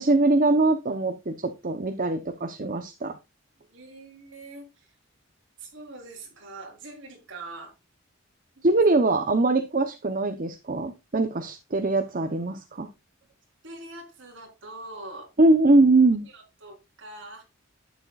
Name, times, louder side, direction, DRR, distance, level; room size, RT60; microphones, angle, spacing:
voice 1, 0.0-3.1 8.6-12.9 15.4-16.2, right 2 dB, 40° right, 0.9 m, -22 dB
voice 2, 3.7-4.9 5.6-7.7 8.6-8.7 13.6-15.3 16.2-17.4, right 2 dB, 60° right, 4.1 m, -43 dB
11.5 x 9.4 x 2.4 m
head